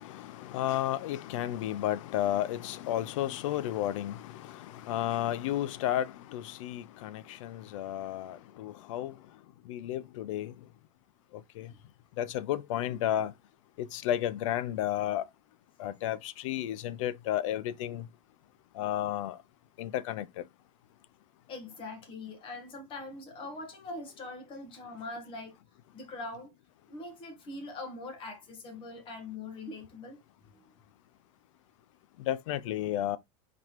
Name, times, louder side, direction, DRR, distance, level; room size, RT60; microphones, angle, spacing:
voice 1, 0.0-9.2 9.7-10.5 11.6-11.7 12.2-13.3 13.8-15.3 15.8-18.1 18.7-19.4 19.8-20.4 32.2-33.2, left 12 dB, 70° left, 0.5 m, -32 dB
voice 2, 21.5-25.5 25.9-26.5 26.9-30.2 30.5-30.6, left 2 dB, 30° left, 1.1 m, -42 dB
4.1 x 3.1 x 3.0 m
supercardioid pair, 145°, 17 cm